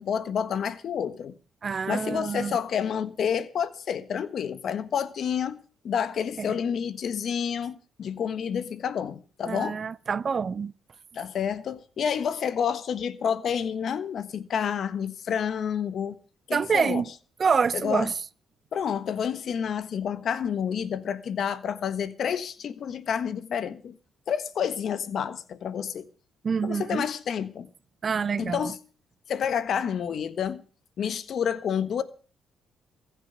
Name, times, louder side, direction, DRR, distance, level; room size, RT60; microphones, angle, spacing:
voice 1, 0.0-1.3 1.9-5.6 5.8-9.8 11.1-16.1 16.5-17.0 17.7-18.1 18.7-24.0 24.3-26.1 26.6-27.7 28.4-28.8 29.3-30.6 31.0-32.0, left 8 dB, 60° left, 1.3 m, -29 dB
voice 2, 1.6-2.5 9.5-10.7 16.5-17.1 17.4-18.1 26.4-27.1 28.0-28.7, right 6 dB, 45° right, 0.6 m, -26 dB
15.5 x 7.4 x 7.8 m
cardioid pair, 90°, 0 cm